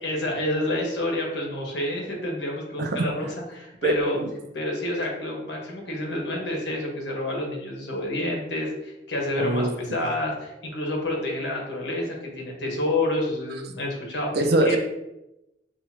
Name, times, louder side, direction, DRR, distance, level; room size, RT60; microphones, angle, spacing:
voice 1, 0.0-4.2 4.5-14.3 14.6-14.8, left 1 dB, 70° left, -1 dB, 1.3 m, -28 dB
voice 2, 3.8-4.3 9.4-10.0 14.3-14.8, right 2 dB, 60° right, 5 dB, 0.5 m, -23 dB
6.4 x 2.6 x 2.8 m, 0.91 s
head